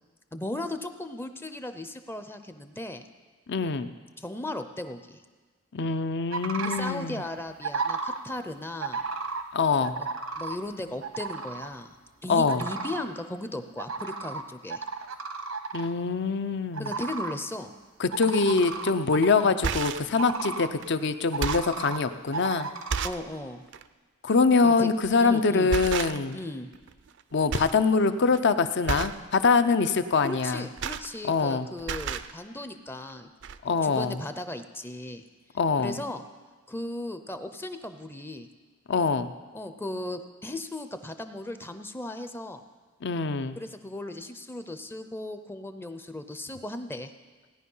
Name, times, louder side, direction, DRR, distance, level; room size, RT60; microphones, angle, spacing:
voice 1, 0.3-3.1 4.2-5.2 6.6-9.0 10.0-10.1 10.4-12.0 12.2-14.8 16.8-17.7 23.0-23.6 24.6-24.9 25.2-25.7 26.3-26.7 30.2-33.3 33.8-35.2 35.8-36.2 36.7-38.5 39.5-42.6 43.6-47.1, left 1 dB, 10° left, 9 dB, 0.5 m, -36 dB
voice 2, 3.5-3.9 5.7-7.2 9.5-10.0 12.3-12.6 15.7-16.9 18.0-22.7 24.2-26.4 27.3-30.6 31.2-31.7 33.6-34.2 35.6-36.0 38.9-39.3 43.0-43.6, left 4 dB, 55° left, 11 dB, 0.6 m, -24 dB
sound 1, 6.3-6.9 7.6-8.2 8.8-9.4 9.8-10.6 11.0-11.7 12.5-13.0 13.8-14.4 14.7-15.9 16.7-17.3 18.1-19.5 20.2-20.7 21.3-22.0 22.3-23.1, right 4 dB, 85° right, 1.0 m, -33 dB
sound 2, 18.7-18.9 19.5-20.1 20.8-20.9 21.2-21.8 22.4-22.5 22.9-23.3 23.7-23.9 25.0-25.3 25.7-26.4 26.7-27.2 27.5-27.8 28.1-28.4 28.8-29.2 30.4-31.5 31.8-32.3 33.1-33.2 33.4-33.6, right 6 dB, 60° right, 0.5 m, -32 dB
17.0 x 10.0 x 5.5 m, 1.4 s
head